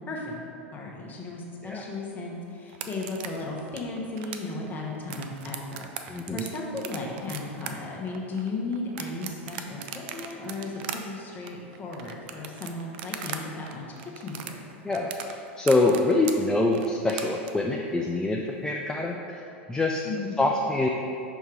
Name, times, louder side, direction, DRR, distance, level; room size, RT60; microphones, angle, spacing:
voice 1, 0.7-14.6 20.0-20.4, left 3 dB, 25° left, -2 dB, 1.2 m, -35 dB
sound 1, 2.7-13.4 13.7-17.5, right 9 dB, 60° right, 0.5 m, -38 dB
voice 2, 6.1-6.4 14.8-19.4 19.7-20.1 20.4-20.9, left 2 dB, 10° left, 0 dB, 0.4 m, -25 dB
5.8 x 3.5 x 4.8 m, 2.6 s
hypercardioid pair, 95°, 7 cm